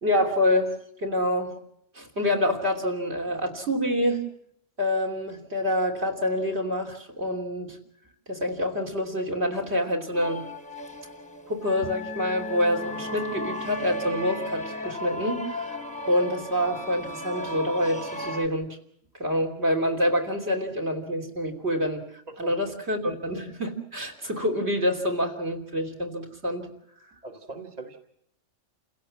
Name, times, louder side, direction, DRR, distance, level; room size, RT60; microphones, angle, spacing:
voice 1, 0.0-0.7 1.0-1.5 2.0-4.2 4.8-7.8 8.3-10.4 11.5-15.7 16.1-18.8 19.2-22.0 22.4-26.7, left 1 dB, 60° right, 5 dB, 3.5 m, -27 dB
sound 1, 10.1-18.5, left 1 dB, 5° left, 1.0 m, -35 dB
voice 2, 27.2-28.0, right 3 dB, 35° right, 3 dB, 1.7 m, -40 dB
29.0 x 16.5 x 7.5 m, 0.73 s
omnidirectional pair, 1.2 m